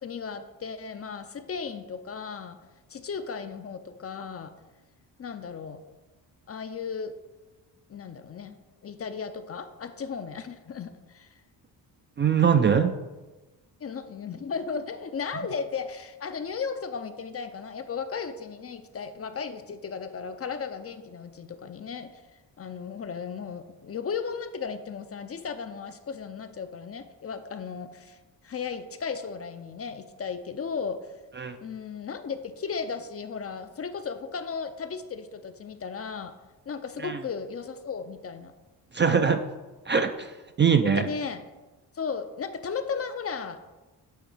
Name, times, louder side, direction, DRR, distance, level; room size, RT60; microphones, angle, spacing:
voice 1, 0.0-2.6 2.9-4.5 5.2-5.8 6.5-7.1 7.9-8.6 8.8-11.4 13.8-22.2 22.6-28.2 28.4-31.1 31.6-36.3 36.7-38.5 40.8-41.5 41.9-43.7, left 6 dB, 35° left, 9 dB, 0.5 m, -35 dB
voice 2, 12.2-12.9 31.4-31.6 37.0-37.2 38.9-39.4 39.9-40.3 40.6-41.1, right 7 dB, 25° right, 8 dB, 0.4 m, -22 dB
7.8 x 2.9 x 4.9 m, 1.1 s
supercardioid pair, 65°, 44 cm